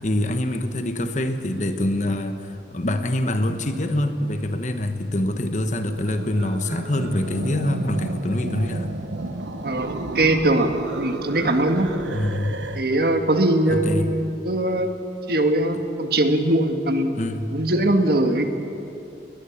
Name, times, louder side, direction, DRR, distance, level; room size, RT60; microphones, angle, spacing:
voice 1, 0.0-8.9 12.1-12.6 13.7-14.1 17.1-17.5, left 1 dB, 40° left, 8 dB, 1.3 m, -25 dB
sound 1, 6.0-12.8, right 2 dB, 90° right, 1.1 m, -32 dB
voice 2, 9.6-10.7 11.0-11.9 12.8-14.9 15.3-17.1 17.5-18.4, right 1 dB, 55° right, 6 dB, 1.6 m, -21 dB
21.0 x 20.5 x 7.3 m, 2.8 s
head